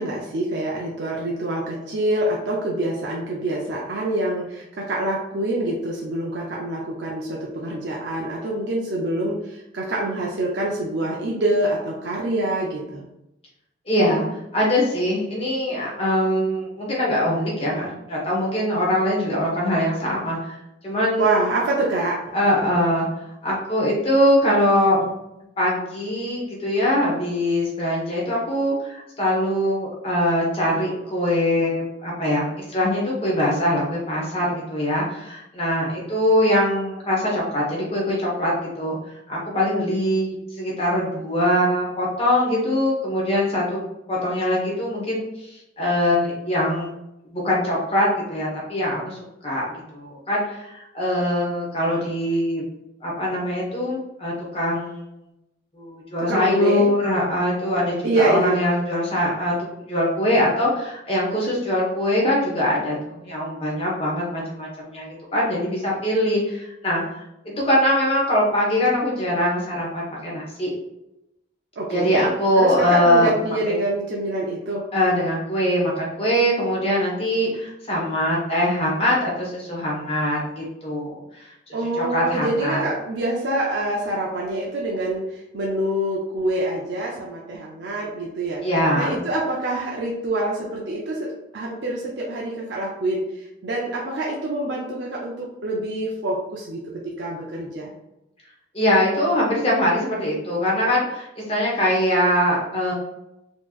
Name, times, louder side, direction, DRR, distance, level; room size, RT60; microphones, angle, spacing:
voice 1, 0.0-13.0 21.2-22.2 56.2-56.9 58.0-58.6 71.8-72.3 72.6-74.9 81.7-88.7 88.9-97.9, right 1 dB, 60° right, -3 dB, 0.6 m, -26 dB
voice 2, 13.9-14.3 14.5-20.5 20.8-21.3 22.3-23.1 23.4-25.1 25.6-38.5 38.8-39.0 39.3-43.8 44.1-45.2 45.8-46.9 47.3-49.2 49.4-49.6 49.9-52.6 53.0-55.1 55.7-59.5 59.9-67.0 67.4-70.7 71.9-73.3 73.7-73.8 74.9-81.2 82.0-82.8 88.6-89.2 98.7-102.9, left 1 dB, 30° left, -5 dB, 1.2 m, -22 dB
4.4 x 2.9 x 2.4 m, 0.88 s
head